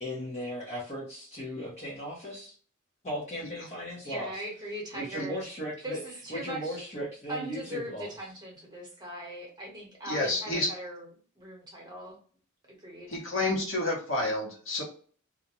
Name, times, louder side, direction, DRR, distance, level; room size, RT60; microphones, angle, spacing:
voice 1, 0.0-2.5 3.0-4.4 4.9-6.0 6.3-8.1, equal, 30° left, -5 dB, 0.7 m, -37 dB
voice 2, 4.0-5.4 5.8-6.8 7.3-11.1 11.3-12.2 12.7-13.2, right 1 dB, 20° right, -2 dB, 1.0 m, -39 dB
voice 3, 10.0-10.7 13.1-14.8, left 2 dB, 65° left, -2 dB, 1.0 m, -29 dB
2.4 x 2.1 x 2.9 m, 0.43 s
head